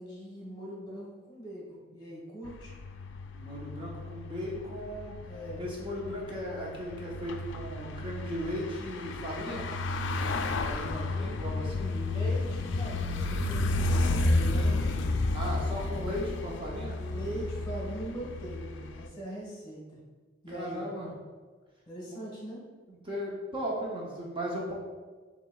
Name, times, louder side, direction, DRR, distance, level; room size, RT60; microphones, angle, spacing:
voice 1, 0.0-2.7 5.2-5.6 10.7-11.3 11.7-15.0 17.0-20.0 20.4-20.8 21.9-22.7, right 1 dB, 25° left, -3 dB, 1.3 m, -41 dB
sound 1, 2.5-19.1, left 2 dB, 70° left, 0.3 m, -32 dB
voice 2, 3.3-5.1 5.6-9.7 10.6-11.9 15.3-17.0 20.5-21.1 22.1-22.2 22.9-24.7, equal, 30° right, -4 dB, 0.7 m, -37 dB
6.6 x 3.1 x 2.3 m, 1.4 s
head